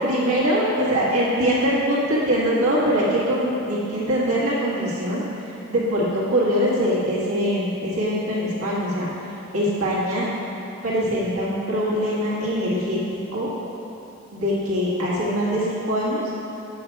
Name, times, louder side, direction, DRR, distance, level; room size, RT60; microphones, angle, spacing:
voice 1, 0.0-5.2 5.7-9.1 9.5-10.3 10.8-13.5 14.3-16.3, equal, 85° right, -7 dB, 1.6 m, -23 dB
8.0 x 5.6 x 4.6 m, 2.9 s
head